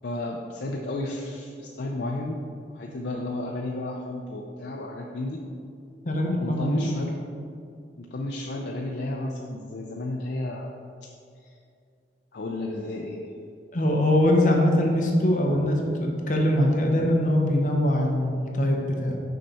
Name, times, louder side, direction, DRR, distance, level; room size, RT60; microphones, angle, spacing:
voice 1, 0.0-2.4 2.7-5.4 6.4-7.1 7.9-10.7 12.3-13.3, left 2 dB, 65° left, 0 dB, 0.5 m, -32 dB
voice 2, 6.0-6.9 13.7-19.2, left 1 dB, 45° left, 0 dB, 0.8 m, -22 dB
6.5 x 5.5 x 4.2 m, 2.4 s
head